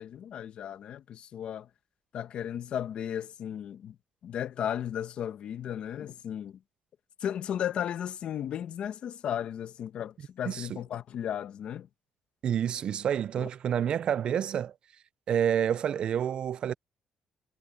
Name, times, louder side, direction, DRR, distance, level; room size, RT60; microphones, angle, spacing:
voice 1, 0.0-1.7 2.1-3.9 4.2-6.6 7.2-11.9 13.4-13.5, left 9 dB, 60° left, 1.2 m, -35 dB
voice 2, 10.5-10.8 12.4-14.7 15.3-16.7, right 9 dB, 50° right, 0.3 m, -28 dB
cardioid pair, 130°, 2 cm